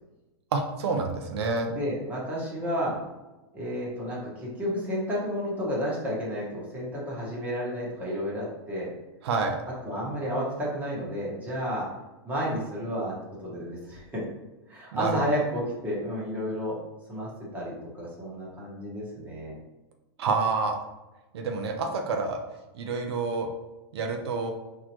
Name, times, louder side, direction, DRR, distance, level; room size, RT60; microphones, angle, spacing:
voice 1, 0.5-1.7 9.2-9.6 14.9-15.2 20.2-20.8 21.3-22.4 22.7-23.5 23.9-24.5, right 4 dB, 80° right, 3 dB, 0.6 m, -28 dB
voice 2, 1.7-3.0 3.5-8.9 9.8-11.8 12.2-13.1 13.4-14.0 14.7-16.7 17.1-19.5, equal, 10° right, -6 dB, 1.4 m, -31 dB
4.2 x 2.9 x 3.0 m, 1.1 s
supercardioid pair, 145°, 13 cm